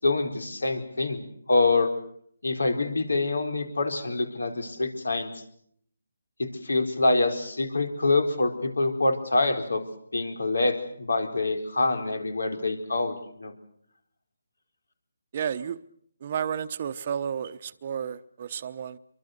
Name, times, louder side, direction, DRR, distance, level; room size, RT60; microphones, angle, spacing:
voice 1, 0.0-1.9 2.4-5.3 6.4-9.8 10.1-13.5, left 2 dB, 90° left, 4.5 m, -26 dB
voice 2, 15.3-15.8 16.2-19.0, right 8 dB, 35° right, 0.9 m, -32 dB
27.5 x 24.0 x 6.7 m
hypercardioid pair, 160°, 0 cm